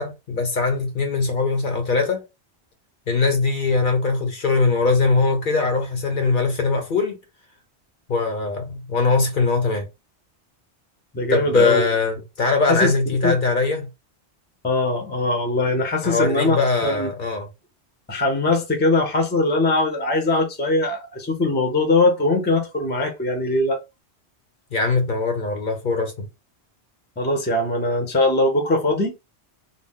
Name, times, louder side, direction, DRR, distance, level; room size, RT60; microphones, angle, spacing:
voice 1, 0.0-2.2 3.1-7.2 8.1-9.9 11.3-13.9 16.0-17.5 24.7-26.3, left 4 dB, 55° left, 0.7 m, -21 dB
voice 2, 11.1-11.8 12.7-13.3 14.6-17.1 18.1-23.8 27.2-29.1, left 2 dB, 10° left, 0.5 m, -21 dB
2.6 x 2.0 x 3.5 m
omnidirectional pair, 1.1 m